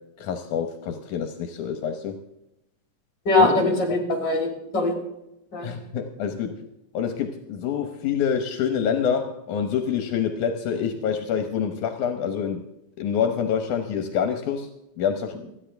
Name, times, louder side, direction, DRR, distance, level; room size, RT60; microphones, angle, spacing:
voice 1, 0.2-2.2 3.4-3.5 5.6-6.7 6.9-12.6 13.0-14.7 15.0-15.4, left 7 dB, 80° left, 6 dB, 2.4 m, -26 dB
voice 2, 3.3-4.9 5.5-5.7, left 2 dB, 35° left, 2 dB, 4.2 m, -21 dB
29.0 x 10.0 x 3.4 m, 0.88 s
omnidirectional pair, 3.5 m